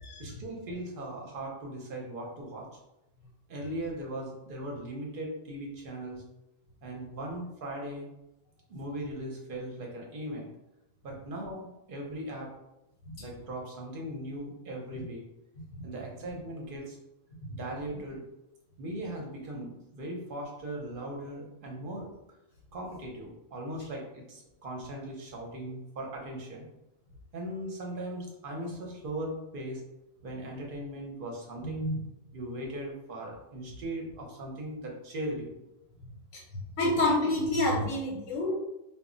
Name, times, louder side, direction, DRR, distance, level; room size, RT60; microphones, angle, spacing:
voice 1, 0.2-2.7 3.5-6.2 6.8-8.1 8.7-10.5 11.0-12.5 13.2-15.2 15.8-17.0 17.5-18.2 18.8-22.1 22.7-26.6 27.3-29.8 30.2-31.9 32.3-35.6, right 1 dB, 55° right, -1 dB, 0.7 m, -38 dB
voice 2, 31.6-32.0 36.8-38.6, left 1 dB, 85° left, -3 dB, 1.0 m, -28 dB
2.1 x 2.0 x 3.7 m, 0.90 s
omnidirectional pair, 1.3 m